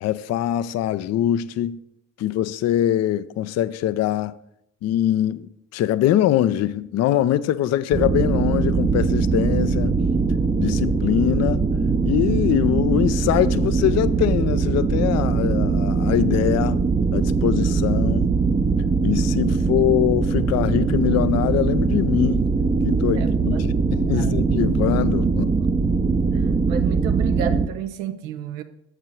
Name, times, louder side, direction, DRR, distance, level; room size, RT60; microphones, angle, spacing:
voice 1, 0.0-1.8 2.2-4.3 4.8-10.0 10.6-11.7 12.1-16.8 17.1-18.3 19.0-22.4 22.8-25.5, left 12 dB, 45° left, 0.4 m, -23 dB
sound 1, 7.9-27.7, right 4 dB, 15° right, 0.5 m, -21 dB
voice 2, 23.1-24.4 26.3-28.6, right 10 dB, 80° right, 0.5 m, -32 dB
7.4 x 4.9 x 4.7 m
hypercardioid pair, 45°, 39 cm